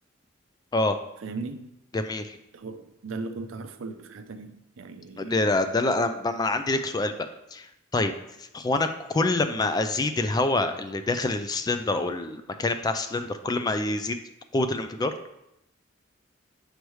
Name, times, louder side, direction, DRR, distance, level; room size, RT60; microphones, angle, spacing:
voice 1, 1.2-1.7 2.5-5.4, right 3 dB, 80° right, 0.5 m, -38 dB
voice 2, 1.9-2.4 5.2-7.1 7.5-7.7 7.9-8.1 8.4-14.2 14.5-15.1, left 2 dB, 20° left, 0.3 m, -26 dB
6.5 x 4.7 x 3.1 m
head